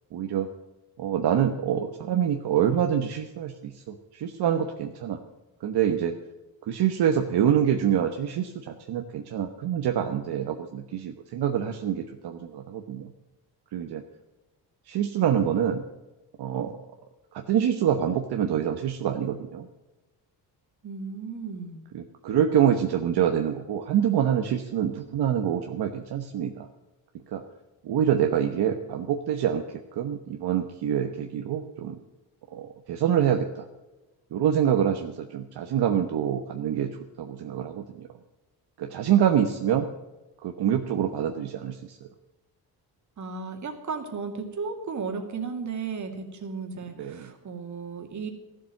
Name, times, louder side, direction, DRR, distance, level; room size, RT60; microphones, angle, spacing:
voice 1, 0.1-0.5 1.0-5.2 5.6-6.1 6.6-13.1 13.7-14.0 14.9-15.8 16.4-16.8 17.3-19.7 21.9-26.7 27.3-27.4 27.8-29.6 29.9-32.0 32.5-33.7 34.3-36.9 37.2-38.1 38.8-39.9 40.4-42.1 47.0-47.3, right 9 dB, 65° right, 4 dB, 1.1 m, -26 dB
voice 2, 20.8-21.8 43.2-48.3, right 5 dB, 45° right, 4 dB, 2.3 m, -34 dB
14.5 x 7.7 x 7.7 m, 1.1 s
cardioid pair, 125°, 41 cm